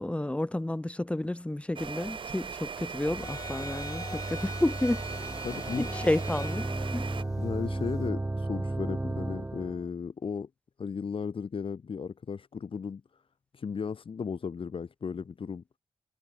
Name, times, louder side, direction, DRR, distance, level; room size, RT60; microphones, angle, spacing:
voice 1, 0.0-5.0 5.8-7.1, left 1 dB, 10° left, 2.4 m, -31 dB
sound 1, 1.8-7.2, right 6 dB, 45° right, 1.1 m, -39 dB
sound 2, 3.1-8.1, left 3 dB, 30° left, 3.3 m, -43 dB
sound 3, 3.1-9.9, right 2 dB, 15° right, 2.2 m, -35 dB
voice 2, 5.4-5.9 7.4-10.5 10.8-13.0 13.5-15.6, left 6 dB, 50° left, 2.7 m, -35 dB
wide cardioid pair, 120°, 11 cm